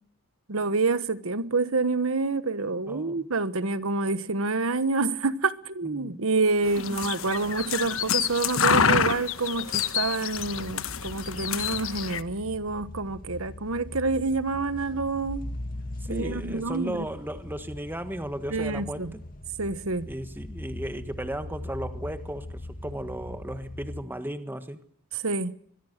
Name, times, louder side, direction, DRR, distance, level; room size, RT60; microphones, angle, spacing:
voice 1, 0.5-15.5 16.1-17.1 18.5-19.1 19.6-20.1 25.1-25.5, right 3 dB, 75° right, 1.2 m, -27 dB
voice 2, 2.9-3.3 5.8-6.2 6.8-6.9 16.0-19.2 20.1-24.8, right 1 dB, 10° right, 1.4 m, -35 dB
sound 1, 6.7-12.2, left 7 dB, 70° left, 1.2 m, -27 dB
sound 2, 10.4-24.0, left 1 dB, 40° left, 2.1 m, -40 dB
24.0 x 22.0 x 6.7 m
head